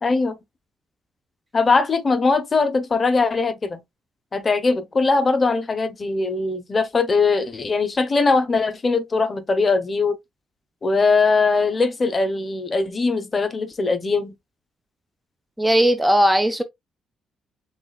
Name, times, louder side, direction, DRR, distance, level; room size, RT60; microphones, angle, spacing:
voice 1, 0.0-0.4 1.5-3.8 4.3-10.2 10.8-14.3, left 4 dB, 35° left, 0.8 m, -21 dB
voice 2, 15.6-16.6, equal, 10° right, 0.6 m, -17 dB
7.1 x 2.4 x 2.3 m
cardioid pair, 90°, 0 cm